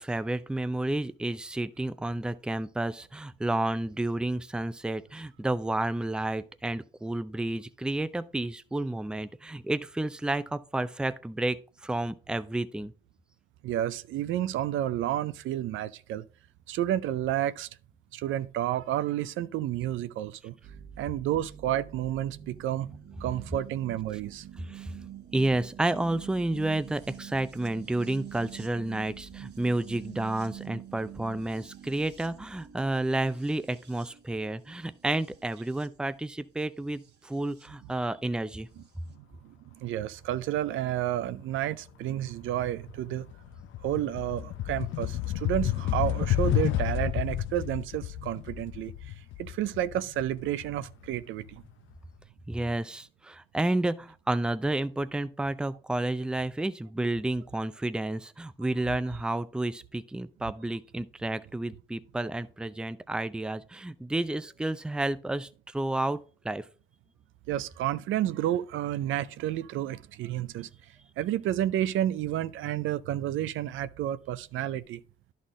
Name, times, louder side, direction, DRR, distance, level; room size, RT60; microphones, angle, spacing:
voice 1, 0.0-11.6 11.8-12.9 24.7-24.9 25.3-38.7 52.5-66.6, right 2 dB, 5° right, 0.4 m, -31 dB
voice 2, 13.6-16.2 16.7-17.7 18.1-20.6 21.0-22.9 23.2-24.5 39.1-43.3 43.8-51.6 67.5-70.7 71.2-75.0, right 12 dB, 80° right, 0.5 m, -31 dB
sound 1, 20.6-37.7 38.8-38.9, right 10 dB, 60° right, 1.4 m, -47 dB
sound 2, 42.0-42.3 42.6-51.5, left 12 dB, 80° left, 0.6 m, -31 dB
11.0 x 4.2 x 3.7 m
cardioid pair, 90°, 20 cm